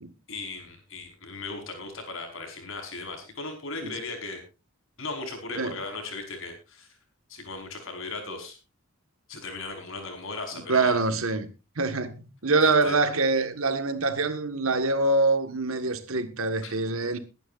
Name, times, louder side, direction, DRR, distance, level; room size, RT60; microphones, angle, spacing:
voice 1, 0.3-4.4 5.0-6.9 7.3-8.6 9.3-10.9 12.6-13.0 16.6-16.8, left 3 dB, 65° left, 5.2 m, -37 dB
voice 2, 10.7-11.5 11.8-17.2, right 3 dB, 75° right, 1.7 m, -25 dB
21.5 x 11.0 x 2.6 m
head